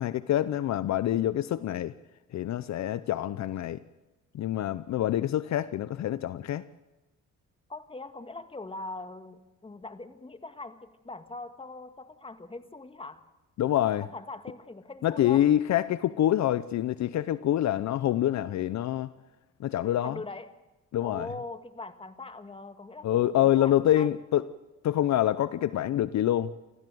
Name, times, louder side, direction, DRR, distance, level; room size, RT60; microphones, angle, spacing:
voice 1, 0.0-1.9 2.3-3.8 4.3-6.7 13.6-14.1 15.0-19.1 19.6-20.2 20.9-21.3 23.0-24.5 24.8-26.5, left 12 dB, 65° left, 0.7 m, -26 dB
voice 2, 7.7-13.2 14.1-15.4 20.0-20.5 21.0-24.1, left 3 dB, 20° left, 1.8 m, -41 dB
26.5 x 15.0 x 7.8 m
cardioid pair, 90°, 30 cm